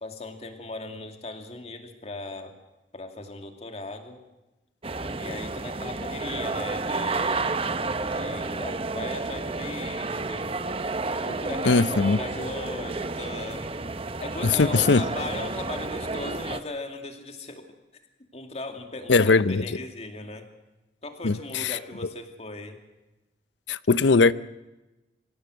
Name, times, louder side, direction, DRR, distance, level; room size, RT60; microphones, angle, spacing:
voice 1, 0.0-2.6 2.9-4.2 5.2-7.4 8.0-10.5 11.2-13.8 14.2-17.7 18.3-20.5 21.0-22.8, left 2 dB, 35° left, 2.5 m, -38 dB
sound 1, 4.8-16.6, right 3 dB, 30° right, 0.9 m, -31 dB
voice 2, 11.6-12.2 14.4-15.0 19.1-19.8 21.2-21.8 23.7-24.3, left 4 dB, 85° left, 0.7 m, -20 dB
24.5 x 16.5 x 8.0 m
head